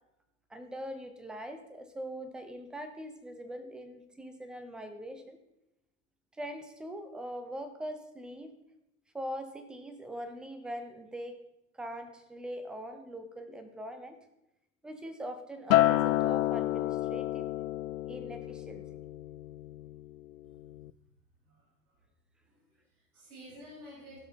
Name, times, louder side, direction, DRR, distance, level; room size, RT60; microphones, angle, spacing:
voice 1, 0.5-5.4 6.3-8.5 9.1-11.4 11.7-14.2 14.8-17.5 18.1-18.8, equal, ahead, 8 dB, 0.3 m, -42 dB
Acoustic guitar, 15.7-20.1 20.5-20.9, left 15 dB, 70° left, 0.5 m, -29 dB
voice 2, 20.4-21.0 21.4-22.1 22.4-24.2, equal, 75° right, -4 dB, 4.6 m, -53 dB
16.0 x 5.7 x 4.2 m, 0.86 s
hypercardioid pair, 105°, 43 cm